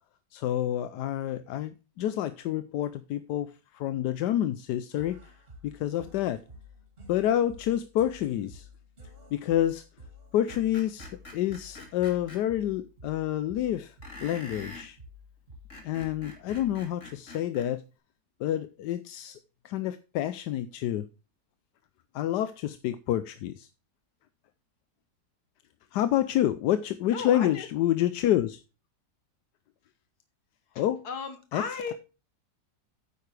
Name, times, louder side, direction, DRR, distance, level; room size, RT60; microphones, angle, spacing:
voice 1, 0.3-5.2 5.6-6.4 7.1-8.7 9.3-9.8 10.3-13.9 14.2-15.0 15.8-17.8 18.4-19.4 19.6-21.1 22.1-23.7 25.9-28.6 30.8-31.0 31.5-31.6, left 12 dB, 85° left, 1.2 m, -28 dB
sound 1, 5.0-17.0, left 1 dB, 35° right, 2.6 m, -51 dB
Screech, 10.5-12.4 14.0-14.9 15.5-17.7, left 2 dB, 45° left, 2.9 m, -45 dB
voice 2, 27.1-27.7 30.7-31.9, left 5 dB, 70° left, 2.1 m, -36 dB
9.4 x 8.5 x 3.3 m
omnidirectional pair, 1.8 m